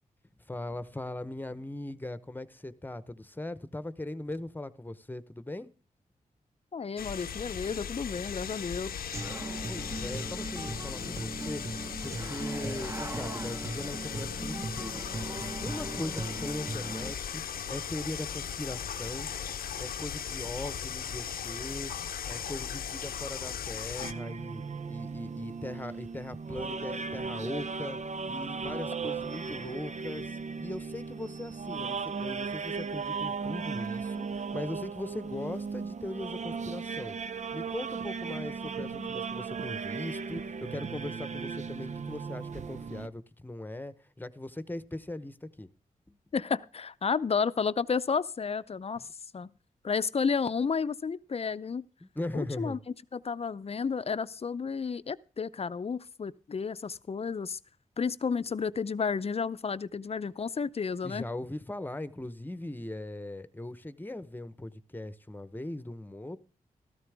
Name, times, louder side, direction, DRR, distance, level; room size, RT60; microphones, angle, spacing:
voice 1, 0.5-5.7 9.7-11.6 12.0-17.4 17.7-19.3 19.8-21.9 22.3-28.0 28.3-37.2 37.5-45.7 46.1-46.2 49.0-49.1 52.0-52.8 61.0-66.4, left 1 dB, 15° left, 1.0 m, -39 dB
voice 2, 6.7-8.9 11.0-11.3 38.8-39.1 46.3-49.1 49.3-49.5 49.8-51.8 52.3-52.8 53.1-57.6 58.0-61.3, left 5 dB, 45° left, 0.6 m, -32 dB
sound 1, 7.0-24.1, left 8 dB, 80° left, 0.7 m, -38 dB
Human voice / Acoustic guitar, 9.1-17.1, right 2 dB, 20° right, 1.0 m, -38 dB
sound 2, 24.0-43.1, right 5 dB, 55° right, 0.6 m, -36 dB
13.5 x 13.0 x 3.5 m
cardioid pair, 50°, 15 cm